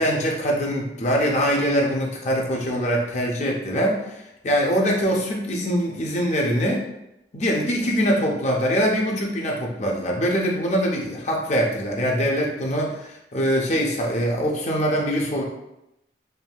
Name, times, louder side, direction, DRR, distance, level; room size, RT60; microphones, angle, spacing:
voice 1, 0.0-6.9 7.3-15.4, equal, 40° left, -1 dB, 0.5 m, -23 dB
3.3 x 2.7 x 2.2 m, 0.85 s
head